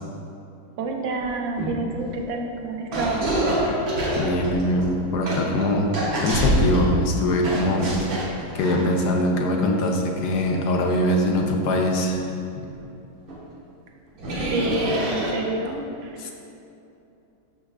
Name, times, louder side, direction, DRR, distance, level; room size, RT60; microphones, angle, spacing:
voice 1, 0.8-3.3 14.5-16.3, right 2 dB, 60° right, 2 dB, 0.8 m, -28 dB
sound 1, 1.2-1.3 1.6-2.3 2.9-6.9 7.4-9.3 9.7-9.9 12.2-12.3 12.7-12.8 13.3-13.4 14.2-15.7, right 1 dB, 90° right, 2.3 m, -26 dB
voice 2, 4.2-5.9 6.2-12.2 12.6-12.7 16.2-16.3, left 1 dB, 65° left, 2 dB, 1.2 m, -22 dB
12.5 x 5.5 x 2.4 m, 2.7 s
omnidirectional pair, 2.1 m